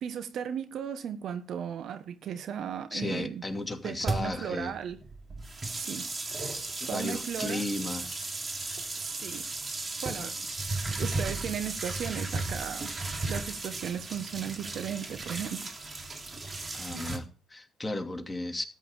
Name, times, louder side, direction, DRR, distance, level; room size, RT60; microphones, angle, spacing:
voice 1, 0.0-3.4 3.8-5.0 5.7-6.1 6.9-7.6 9.0-9.4 10.0-10.4 10.9-12.9 13.3-15.7 16.9-17.1, right 8 dB, 65° right, 1.4 m, -36 dB
voice 2, 2.9-4.7 6.8-8.2 16.7-18.7, left 2 dB, 15° left, 2.8 m, -35 dB
sound 1, 4.0-17.2, right 3 dB, 35° right, 3.2 m, -35 dB
13.5 x 9.3 x 5.0 m
supercardioid pair, 65°, 0 cm